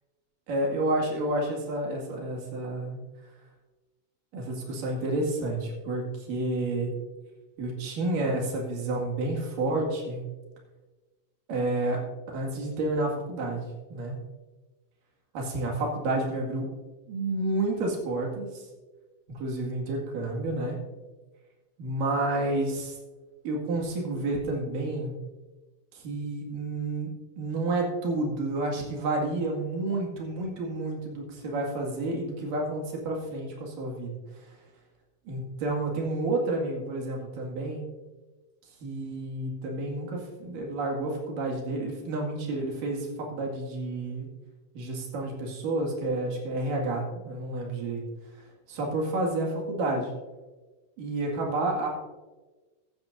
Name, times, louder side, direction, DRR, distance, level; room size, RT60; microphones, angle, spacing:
voice 1, 0.5-3.0 4.3-6.9 7.6-10.2 11.5-12.0 12.3-14.2 15.4-16.7 17.1-18.7 19.3-20.8 21.8-23.0 23.4-25.2 25.9-34.6 35.3-37.9 38.8-44.3 44.7-48.0 48.3-48.4 48.7-50.1 51.0-51.9, right 2 dB, 85° right, -1 dB, 3.7 m, -30 dB
15.5 x 12.0 x 2.6 m, 1.2 s
omnidirectional pair, 3.7 m